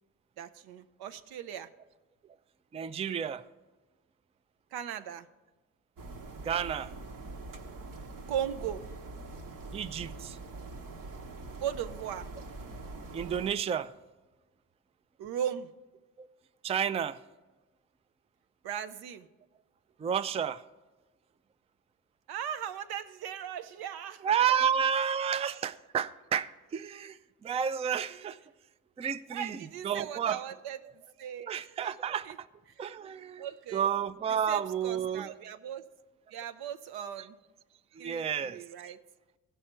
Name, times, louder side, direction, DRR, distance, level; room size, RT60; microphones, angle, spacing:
voice 1, 0.4-1.7 4.7-5.3 8.3-8.9 11.6-12.3 15.2-15.7 18.6-19.3 22.3-25.5 28.1-28.3 29.3-30.8 31.2-31.5 31.8-31.9 32.2-32.4 32.8-32.9 33.4-33.9 34.3-35.9 36.3-37.4 38.0-39.0, right 9 dB, 80° right, 0.6 m, -38 dB
voice 2, 2.7-3.4 6.4-6.9 9.7-10.4 13.1-13.9 16.2-16.3 16.6-17.2 20.0-20.6 24.2-28.4 29.0-29.6 29.8-30.4 31.5-32.5 32.8-33.5 33.7-35.3 38.0-38.9, right 8 dB, 20° right, 0.3 m, -31 dB
sound 1, 6.0-13.5, right 2 dB, 60° right, 1.0 m, -44 dB
15.5 x 5.6 x 4.4 m
supercardioid pair, 65°, 37 cm